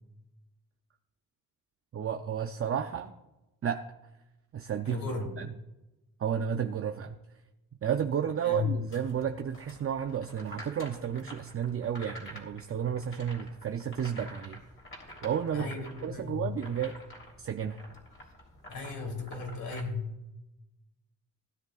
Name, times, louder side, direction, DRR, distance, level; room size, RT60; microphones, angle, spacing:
voice 1, 1.9-3.1 3.6-3.8 4.5-5.0 5.4-5.5 6.2-7.2 7.8-14.6 15.2-15.7 16.0-17.0 17.4-17.8, right 8 dB, 40° right, 6 dB, 0.5 m, -32 dB
voice 2, 4.8-5.3 8.4-8.8 15.5-16.5 18.7-20.1, left 4 dB, 70° left, 1 dB, 3.3 m, -35 dB
sound 1, 8.9-19.8, equal, 35° left, 3.4 m, -49 dB
18.5 x 10.5 x 2.4 m, 0.98 s
cardioid pair, 115°, 37 cm